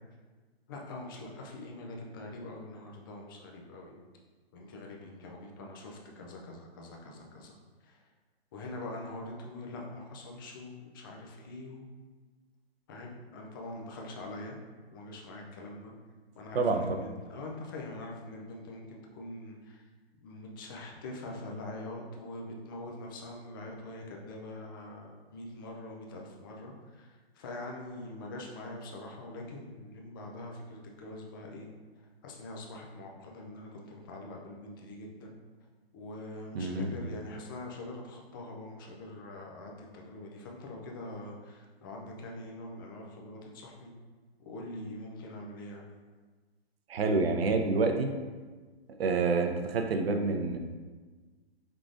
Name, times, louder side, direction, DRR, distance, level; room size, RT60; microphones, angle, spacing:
voice 1, 0.7-4.0 4.5-7.5 7.8-8.0 8.5-11.9 12.9-14.6 14.9-15.9 16.4-19.8 20.2-31.7 32.0-35.3 35.9-43.9 44.5-45.9, left 2 dB, 20° left, 0 dB, 0.4 m, -44 dB
voice 2, 16.5-17.0 36.5-36.9 46.9-48.1 49.0-50.6, right 3 dB, 70° right, 5 dB, 0.7 m, -28 dB
4.8 x 3.7 x 2.5 m, 1.4 s
hypercardioid pair, 140°, 32 cm